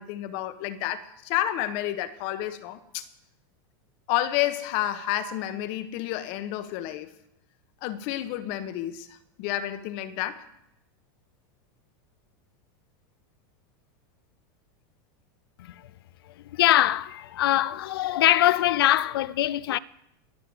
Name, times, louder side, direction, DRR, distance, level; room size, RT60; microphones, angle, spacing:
voice 1, 0.0-3.0 4.1-7.1 7.8-9.1 9.4-10.5, left 13 dB, 45° left, 1.2 m, -30 dB
voice 2, 16.5-19.8, left 14 dB, 90° left, 0.6 m, -22 dB
20.5 x 6.8 x 7.9 m
supercardioid pair, 155°, 12 cm